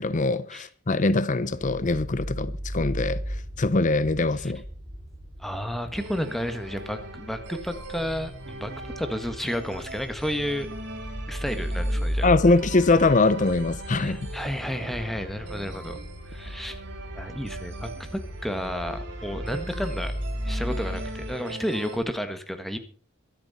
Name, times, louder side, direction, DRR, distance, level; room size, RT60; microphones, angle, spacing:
voice 1, 0.0-4.6 12.2-14.2, left 3 dB, 40° left, 0.6 m, -23 dB
sound 1, 1.5-21.3, equal, 30° right, 4.3 m, -35 dB
voice 2, 5.4-10.7 11.3-12.3 13.9-16.0 16.2-16.8 17.1-20.1 20.4-22.8, equal, ahead, 1.5 m, -32 dB
sound 2, 6.0-22.0, right 2 dB, 55° right, 4.3 m, -41 dB
24.0 x 8.8 x 4.2 m
head